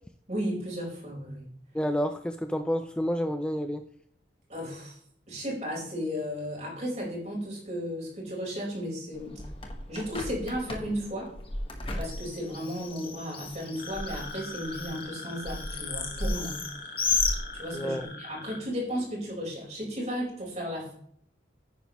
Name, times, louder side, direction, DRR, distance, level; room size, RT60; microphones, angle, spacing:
voice 1, 0.3-1.5 4.5-5.0 5.3-9.4 9.9-11.3 12.0-16.6 17.5-20.9, equal, 35° right, -3 dB, 4.5 m, -34 dB
voice 2, 1.7-3.8 17.7-18.0, equal, 5° left, 8 dB, 0.4 m, -29 dB
Bird, 9.1-18.0, left 3 dB, 30° left, 1.4 m, -34 dB
sound 1, 13.8-18.6, left 3 dB, 50° left, 2.4 m, -41 dB
10.5 x 9.8 x 3.0 m, 0.65 s
head